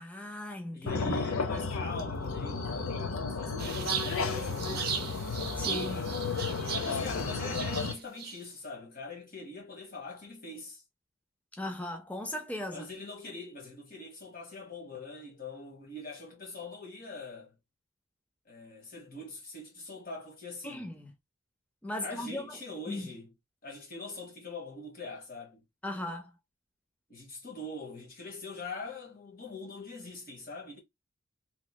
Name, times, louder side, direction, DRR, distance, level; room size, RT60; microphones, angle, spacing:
voice 1, 0.0-1.1 5.6-6.0 11.6-12.9 20.6-21.1 21.8-22.4 22.9-23.1 25.8-26.3, left 1 dB, 5° left, 0.4 m, -37 dB
voice 2, 0.7-5.0 5.6-6.1 6.8-10.8 12.7-17.5 18.4-21.0 22.0-23.3 23.6-25.6 25.9-26.0 27.1-30.8, left 3 dB, 45° left, 1.4 m, -43 dB
sound 1, 0.9-7.9, left 4 dB, 85° left, 0.7 m, -33 dB
sound 2, 3.6-8.4, right 8 dB, 45° right, 0.6 m, -37 dB
3.0 x 3.0 x 2.2 m
head